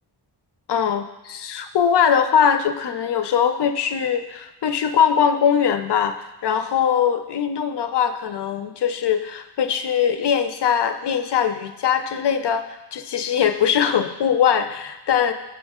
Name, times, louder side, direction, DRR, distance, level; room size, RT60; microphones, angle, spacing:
voice 1, 0.7-15.3, left 8 dB, 65° left, 9 dB, 0.6 m, -21 dB
6.2 x 6.0 x 3.6 m, 0.99 s
wide cardioid pair, 100°, 44 cm